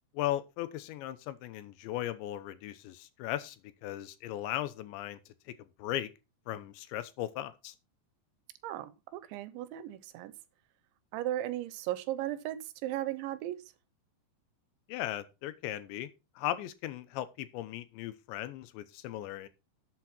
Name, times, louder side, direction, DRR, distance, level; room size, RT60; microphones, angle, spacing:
voice 1, 0.1-3.6 3.8-5.2 5.8-6.1 6.5-7.7 14.9-16.1 16.4-19.5, left 13 dB, 80° left, 3.2 m, -37 dB
voice 2, 8.6-10.3 11.1-13.6, right 13 dB, 85° right, 3.3 m, -36 dB
12.5 x 8.1 x 4.4 m
omnidirectional pair, 5.2 m